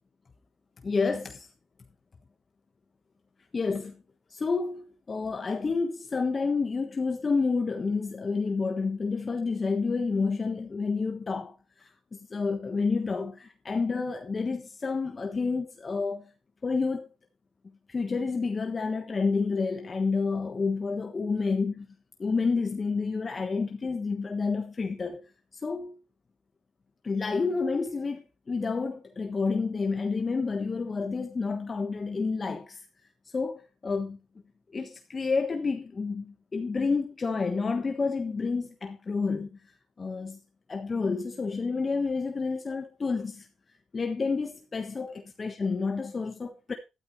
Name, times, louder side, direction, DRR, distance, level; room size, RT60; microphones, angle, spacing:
voice 1, 0.8-1.5 3.5-4.0 4.3-16.3 16.6-17.1 17.9-21.7 22.2-25.3 25.5-26.0 27.0-32.8 33.3-34.2 34.7-39.6 40.0-40.4 40.7-43.5 43.9-45.1 45.4-46.7, left 4 dB, 35° left, 1.3 m, -29 dB
13.0 x 12.5 x 3.1 m
cardioid pair, 90°, 0 cm